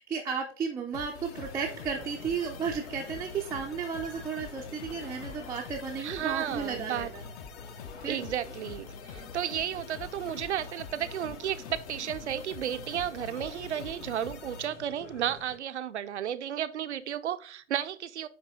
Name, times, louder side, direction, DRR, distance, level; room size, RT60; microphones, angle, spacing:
voice 1, 0.0-7.2 8.0-8.2, right 6 dB, 10° right, -1 dB, 0.5 m, -34 dB
sound 1, 0.9-14.7, left 6 dB, 35° left, 0.7 m, -45 dB
sound 2, 1.3-15.6, left 5 dB, 75° left, 1.0 m, -48 dB
voice 2, 6.0-7.1 8.1-18.3, right 10 dB, 70° right, 12 dB, 0.6 m, -33 dB
9.4 x 3.3 x 3.6 m, 0.42 s
figure-of-eight pair, 105°, 36 cm